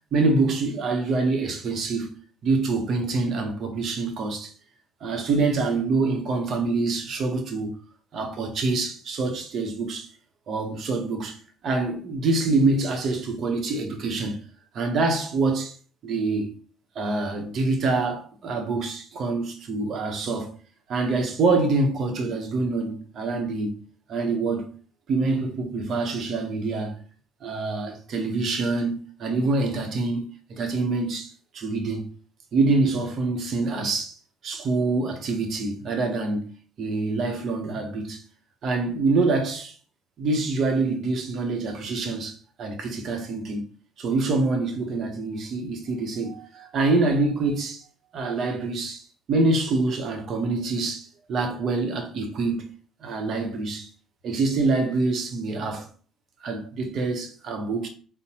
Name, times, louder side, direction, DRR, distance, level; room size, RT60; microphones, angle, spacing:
voice 1, 0.1-4.5 5.0-7.7 8.1-10.1 10.5-11.4 11.6-14.5 14.7-15.7 16.0-16.5 17.0-20.5 20.9-23.8 24.1-24.7 25.1-27.0 27.4-30.2 30.5-32.1 32.5-34.2 34.4-36.5 36.8-38.2 38.6-39.7 40.2-43.6 44.0-47.8 48.1-49.0 49.3-52.7 53.0-53.9 54.2-55.9 56.4-57.9, right 3 dB, 60° right, 0.8 m, -25 dB
3.9 x 2.1 x 2.9 m
supercardioid pair, 65°, 0 cm